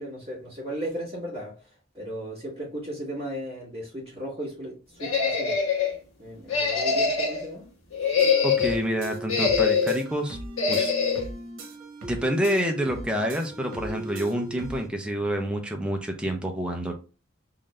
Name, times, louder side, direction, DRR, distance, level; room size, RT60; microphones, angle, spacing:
voice 1, 0.0-5.6 6.2-7.7, right 1 dB, 20° right, 1.8 m, -36 dB
sound 1, 5.0-5.9 6.5-7.5 7.9-8.8 9.3-10.0 10.6-11.2, left 5 dB, 85° left, 1.2 m, -23 dB
sound 2, 8.2-14.9, right 2 dB, 75° right, 1.0 m, -38 dB
voice 2, 8.4-10.4 10.7-10.9 12.1-16.9, equal, 5° right, 0.6 m, -28 dB
3.8 x 2.6 x 3.2 m
head